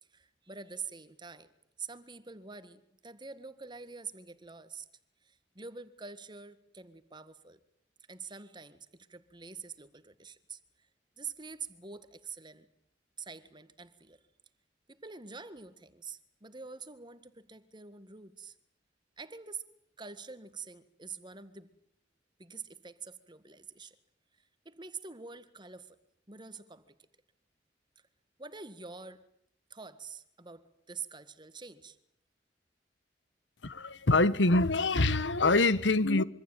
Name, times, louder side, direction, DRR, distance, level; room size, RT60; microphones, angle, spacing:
voice 1, 0.1-1.5 1.8-4.9 5.2-7.6 8.1-10.9 11.2-12.7 13.2-14.2 14.9-18.6 19.2-19.7 20.0-21.7 22.4-24.0 24.4-26.0 26.3-26.9 28.4-29.3 29.7-32.0, right 5 dB, 25° right, 1.8 m, -46 dB
voice 2, 33.6-36.2, left 2 dB, 80° left, 1.2 m, -25 dB
26.0 x 25.0 x 9.1 m
head